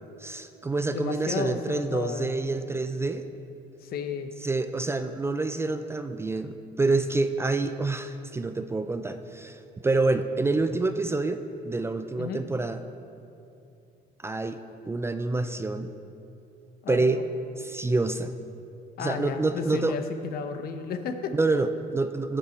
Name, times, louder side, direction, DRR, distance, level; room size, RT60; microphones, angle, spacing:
voice 1, 0.2-3.3 4.4-12.8 14.2-14.6 14.9-15.9 16.9-17.2 17.6-18.3 19.0-20.0 21.3-22.4, right 3 dB, 15° right, 9 dB, 0.4 m, -27 dB
voice 2, 0.9-2.3 3.8-4.3 12.2-12.4 16.8-17.2 19.0-20.0 20.3-21.6, left 6 dB, 65° left, 8 dB, 0.8 m, -33 dB
12.0 x 6.8 x 4.3 m, 2.8 s
cardioid pair, 110°, 17 cm